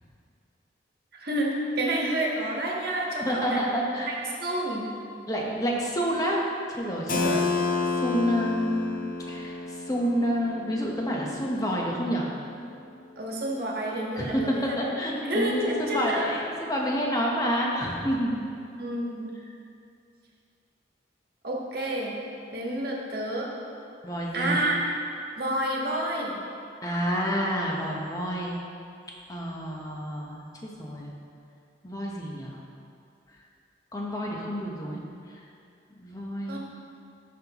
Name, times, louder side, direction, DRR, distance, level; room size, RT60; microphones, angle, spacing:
voice 1, 1.1-3.6 4.0-4.9 7.1-7.5 13.2-14.9 15.2-16.3 18.8-19.3 21.4-22.2 22.5-23.5 24.3-24.8 25.4-26.4 36.5-36.6, right 1 dB, 55° right, -3 dB, 1.4 m, -29 dB
voice 2, 3.2-4.1 5.3-6.4 6.7-7.4 8.0-8.9 9.3-12.3 14.2-18.5 24.0-24.6 26.8-28.6 29.3-31.1 31.8-32.6 33.9-35.0 36.0-36.6, equal, 20° left, -2 dB, 1.0 m, -28 dB
Keyboard (musical), 7.1-12.6, left 4 dB, 50° left, 0.6 m, -31 dB
14.0 x 5.6 x 3.0 m, 2.5 s
head